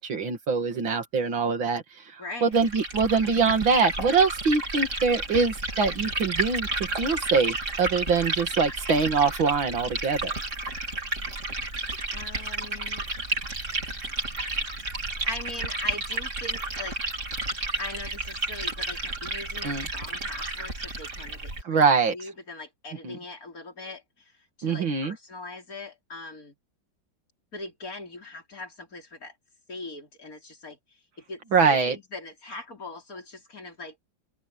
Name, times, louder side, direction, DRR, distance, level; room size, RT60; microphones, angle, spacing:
voice 1, 0.0-10.3 19.6-19.9 21.6-22.1 23.0-23.2 24.6-25.2 31.5-32.0, right 5 dB, 80° right, 3.1 m, -24 dB
voice 2, 2.2-2.5 12.1-13.0 15.2-17.0 17.2-17.4 17.8-26.5 27.5-29.3 29.7-30.8 31.3-34.0, left 2 dB, 45° left, 5.0 m, -40 dB
Liquid, 2.5-21.6, right 2 dB, 40° right, 4.1 m, -32 dB
open air
omnidirectional pair, 2.1 m